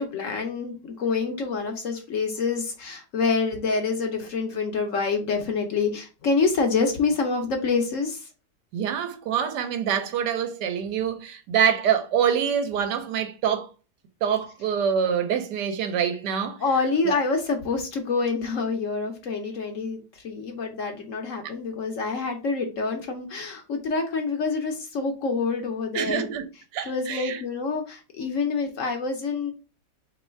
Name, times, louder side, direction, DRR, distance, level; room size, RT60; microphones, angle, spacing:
voice 1, 0.0-8.3 16.6-26.3 26.9-29.5, left 4 dB, 60° left, 0.9 m, -27 dB
voice 2, 8.7-13.7 14.2-16.6 17.0-17.1 25.9-26.4 26.7-27.4, right 8 dB, 80° right, 1.3 m, -25 dB
3.2 x 3.0 x 4.3 m
omnidirectional pair, 1.8 m